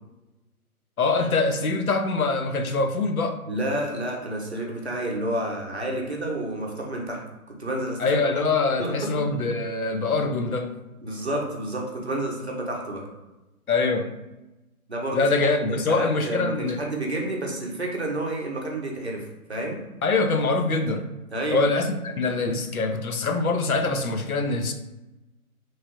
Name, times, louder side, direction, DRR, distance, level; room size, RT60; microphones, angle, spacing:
voice 1, 1.0-3.4 8.0-10.8 13.7-14.1 15.1-16.8 20.0-21.1 21.5-24.7, left 3 dB, 70° left, 6 dB, 0.5 m, -24 dB
voice 2, 3.5-8.2 8.8-9.1 11.0-13.1 14.9-15.3 15.7-19.8 21.3-21.7, right 1 dB, 45° right, -1 dB, 0.7 m, -30 dB
3.0 x 2.3 x 2.9 m, 1.0 s
hypercardioid pair, 180°, 45 cm